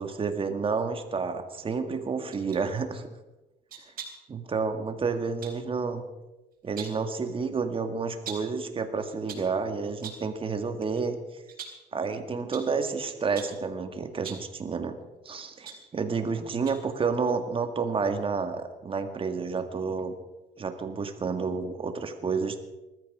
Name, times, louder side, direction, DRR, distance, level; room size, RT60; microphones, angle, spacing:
voice 1, 0.0-3.1 4.3-6.0 6.6-11.4 11.9-15.0 15.3-20.2 20.6-22.6, right 5 dB, 30° right, 7 dB, 2.0 m, -30 dB
sound 1, 2.3-2.6 3.7-4.3 5.4-5.6 6.5-7.1 8.2-8.6 9.1-9.5 10.0-10.3 10.8-11.0 11.5-11.9 12.5-12.8 13.3-13.6 14.1-14.5 15.3-16.3 16.6-16.9 17.2-17.3, right 7 dB, 60° right, 4.2 m, -43 dB
20.0 x 13.5 x 5.0 m, 1.0 s
cardioid pair, 110°, 17 cm